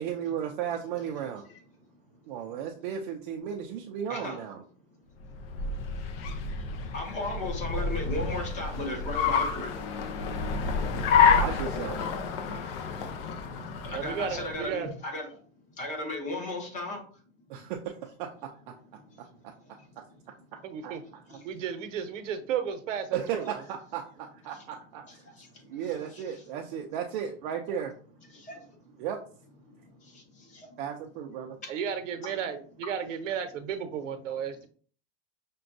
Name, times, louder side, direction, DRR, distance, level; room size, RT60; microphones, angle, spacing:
voice 1, 0.0-1.5 2.3-4.6 10.8-10.9 11.2-12.0 17.5-18.3 18.7-18.8 19.4-19.5 20.8-20.9 23.1-25.3 25.7-27.9 29.0-29.2 30.8-31.6, right 8 dB, 45° right, 2 dB, 0.4 m, -35 dB
Car, 5.2-14.7, left 6 dB, 50° left, 0.6 m, -28 dB
voice 2, 6.5-9.8 13.8-15.4 15.8-17.0 17.6-17.7 18.9-19.9 21.3-21.5 24.5-24.6 25.1-26.2 28.3-28.7 29.6-30.8 31.6-31.7 32.3-32.4, left 1 dB, 20° left, 2 dB, 0.8 m, -37 dB
voice 3, 13.9-14.9 20.6-21.0 21.4-23.6 31.7-34.7, right 7 dB, 85° right, 8 dB, 0.8 m, -33 dB
5.9 x 2.2 x 2.5 m, 0.44 s
supercardioid pair, 155°, 37 cm